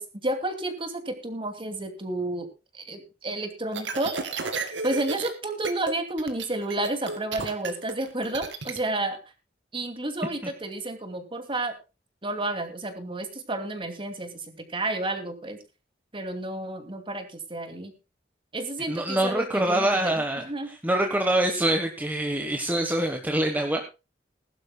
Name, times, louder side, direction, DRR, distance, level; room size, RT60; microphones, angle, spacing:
voice 1, 0.0-2.5 2.7-4.1 4.8-9.2 9.7-11.7 12.2-15.6 16.1-17.9 18.5-20.7, right 2 dB, 30° right, 7 dB, 2.6 m, -31 dB
sound 1, 3.7-5.3 5.6-5.9 6.2-8.8, right 4 dB, 80° right, 2.4 m, -32 dB
voice 2, 18.9-23.8, right 1 dB, 10° right, 4 dB, 1.3 m, -25 dB
21.0 x 12.0 x 2.3 m, 0.29 s
head